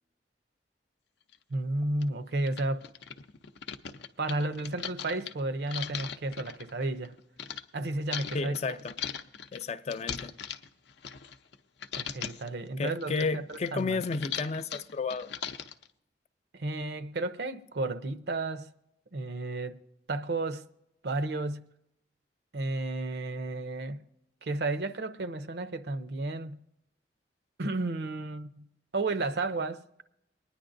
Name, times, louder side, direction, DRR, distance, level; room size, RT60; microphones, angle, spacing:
sound 1, 1.3-1.4 2.0-2.1 2.4-7.6 8.1-11.6 11.8-12.5 12.9-15.9, left 8 dB, 75° left, 0.6 m, -39 dB
voice 1, 1.5-2.9 4.2-7.2 7.7-8.5 12.0-14.0 16.5-18.7 19.1-19.8 20.1-20.7 21.0-21.7 22.5-24.0 24.4-26.6 27.6-28.7 28.9-29.8, right 2 dB, 65° right, 0.6 m, -32 dB
voice 2, 8.3-8.9 9.5-10.3 12.8-15.3, left 4 dB, 35° left, 0.3 m, -32 dB
23.5 x 9.9 x 2.6 m
head